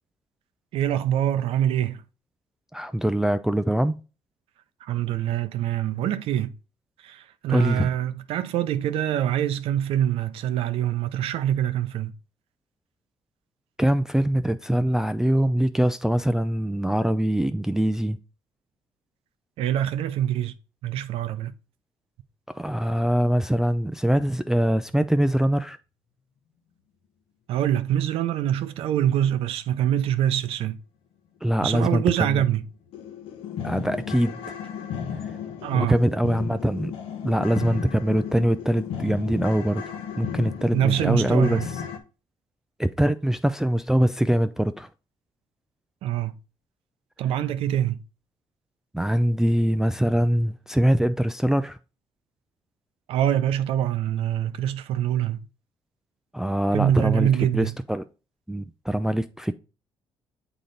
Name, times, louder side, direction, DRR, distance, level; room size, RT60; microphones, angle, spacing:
voice 1, 0.7-2.0 4.8-6.5 7.0-12.1 19.6-20.5 20.8-21.5 27.5-30.8 31.6-32.6 35.6-36.0 40.7-41.7 46.0-46.3 47.2-48.0 53.1-55.4 56.7-57.7, right 11 dB, 75° right, 0.5 m, -24 dB
voice 2, 2.7-3.9 7.5-7.9 13.8-18.2 22.5-25.8 31.4-32.4 33.6-34.4 35.7-36.9 37.2-41.8 42.8-44.9 48.9-51.8 56.3-58.0 58.5-59.5, right 1 dB, 5° right, 0.3 m, -23 dB
sound 1, 32.9-42.0, left 7 dB, 80° left, 0.9 m, -34 dB
6.8 x 3.9 x 3.8 m
cardioid pair, 85°, 10 cm